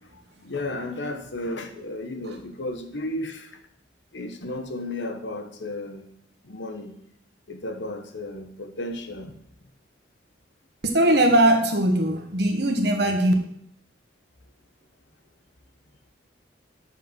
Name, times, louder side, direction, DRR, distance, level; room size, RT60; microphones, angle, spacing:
voice 1, 0.0-3.6 4.1-6.1 6.4-7.0 7.5-9.4, left 2 dB, 75° left, 7 dB, 1.2 m, -34 dB
voice 2, 10.8-13.3, right 1 dB, 60° right, 4 dB, 1.5 m, -20 dB
7.8 x 6.4 x 6.0 m, 0.68 s
head